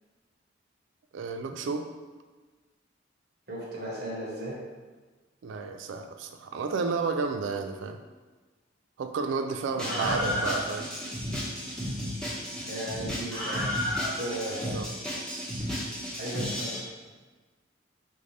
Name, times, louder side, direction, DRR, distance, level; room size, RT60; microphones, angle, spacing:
voice 1, 1.1-1.9 5.4-8.0 9.0-10.9 14.5-14.9, right 4 dB, 75° right, 6 dB, 0.3 m, -32 dB
voice 2, 3.5-4.5 9.8-10.4 12.7-13.6 14.1-15.0 16.2-16.8, right 1 dB, 55° right, -4 dB, 1.1 m, -36 dB
Screaming, 9.8-16.8, left 1 dB, 5° left, 1.1 m, -32 dB
5.1 x 2.7 x 3.2 m, 1.3 s
head